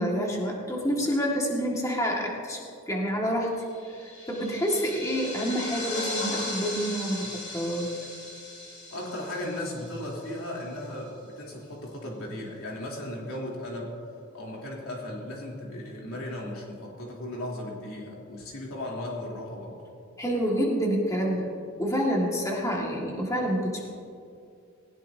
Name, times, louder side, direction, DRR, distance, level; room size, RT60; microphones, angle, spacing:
voice 1, 0.0-3.5 3.9-7.3 7.5-7.9 20.2-21.5 21.8-23.9, equal, 15° left, -2 dB, 1.9 m, -28 dB
sound 1, 3.7-10.6, left 2 dB, 90° left, 4.1 m, -37 dB
voice 2, 8.9-13.9 14.3-19.8, left 1 dB, 70° left, -3 dB, 3.3 m, -36 dB
19.5 x 18.0 x 2.8 m, 2.5 s
head